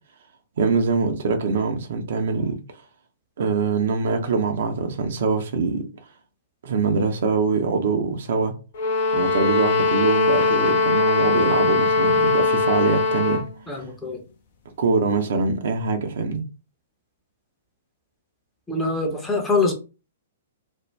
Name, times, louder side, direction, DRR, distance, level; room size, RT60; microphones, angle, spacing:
voice 1, 0.6-2.6 3.4-5.8 6.6-8.5 9.1-13.4 14.8-16.4, right 4 dB, 55° right, 0.6 m, -23 dB
sound 1, 8.7-13.5, left 3 dB, 50° left, 0.7 m, -20 dB
voice 2, 13.7-14.2 18.7-19.7, left 3 dB, 10° left, 0.7 m, -24 dB
2.5 x 2.1 x 3.3 m
figure-of-eight pair, 110°, 0 cm